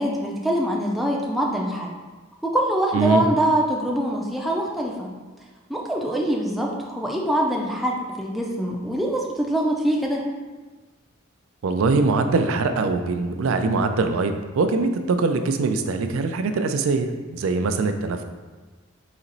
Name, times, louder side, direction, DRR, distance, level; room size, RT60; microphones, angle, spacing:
voice 1, 0.0-1.9 2.4-5.1 5.7-10.2, right 1 dB, ahead, -2 dB, 0.4 m, -24 dB
voice 2, 2.9-3.3 11.6-18.2, right 3 dB, 80° right, 7 dB, 0.4 m, -22 dB
4.2 x 2.9 x 3.9 m, 1.3 s
head